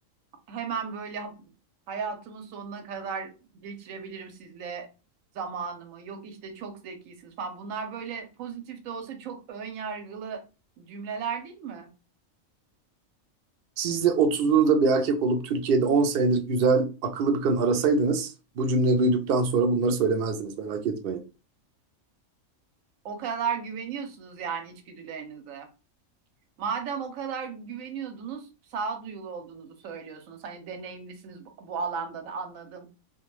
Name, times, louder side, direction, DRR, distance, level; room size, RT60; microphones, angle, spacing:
voice 1, 0.5-1.5 1.9-4.9 5.3-10.4 10.8-11.9 23.0-25.7 26.6-32.9, right 6 dB, 80° right, 1.0 m, -35 dB
voice 2, 13.8-21.2, right 4 dB, 65° right, 0.6 m, -23 dB
2.3 x 2.2 x 3.1 m
omnidirectional pair, 1.4 m